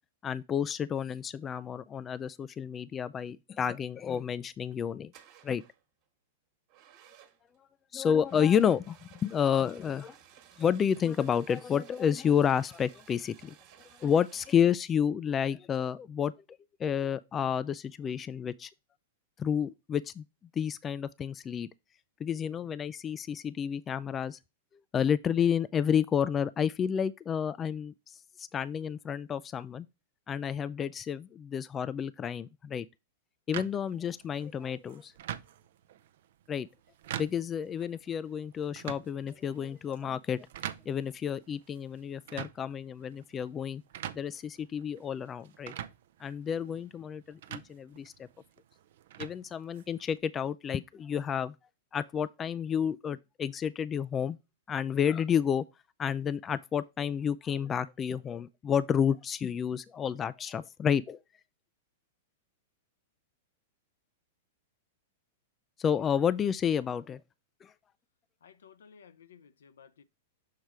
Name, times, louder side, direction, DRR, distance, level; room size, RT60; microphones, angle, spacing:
voice 1, 0.2-5.1 5.4-5.6 7.9-10.2 10.6-13.5 14.0-16.3 16.8-18.7 19.4-20.2 20.6-21.7 22.2-24.4 24.9-29.9 30.3-32.9 33.5-35.1 36.5-36.7 37.2-40.5 40.9-43.8 44.1-45.7 46.2-48.1 49.2-51.5 51.9-54.4 54.7-55.6 56.0-61.2 65.8-67.2 67.6-67.7, left 8 dB, 25° left, 0.3 m, -30 dB
sound 1, 4.5-4.7 5.1-5.8 6.7-7.6 8.2-14.6, right 10 dB, 45° right, 1.4 m, -57 dB
sound 2, 33.5-50.2, right 11 dB, 65° right, 0.5 m, -45 dB
voice 2, 68.4-70.0, left 7 dB, 80° left, 0.6 m, -56 dB
6.6 x 3.1 x 4.7 m
hypercardioid pair, 115°, 0 cm